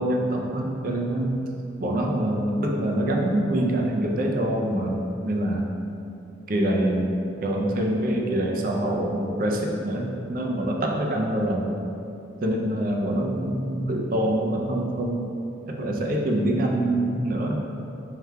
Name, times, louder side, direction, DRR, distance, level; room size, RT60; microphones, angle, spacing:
voice 1, 0.0-1.5 1.8-5.7 6.5-7.1 7.4-11.8 12.4-15.2 15.8-17.6, right 1 dB, 50° right, 0 dB, 0.4 m, -25 dB
4.8 x 3.3 x 2.2 m, 2.7 s
head